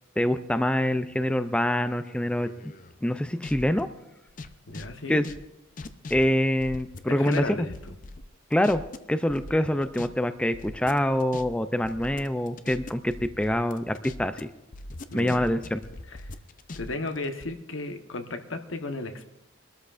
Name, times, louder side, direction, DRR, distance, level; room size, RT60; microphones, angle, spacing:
voice 1, 0.2-2.7 3.0-3.9 5.1-5.3 6.1-7.7 8.5-8.8 9.1-14.5 15.1-15.8, left 1 dB, 5° left, 10 dB, 0.4 m, -25 dB
sound 1, 2.1-3.8 4.3-7.4 7.7-9.0 9.3-10.1 10.4-14.4 14.7-17.5, left 2 dB, 45° left, 0.6 m, -41 dB
voice 2, 4.7-5.2 7.0-7.9 15.1-15.5 16.1-16.2 16.8-19.3, left 2 dB, 85° left, 6 dB, 1.1 m, -34 dB
23.5 x 13.0 x 2.5 m, 0.87 s
head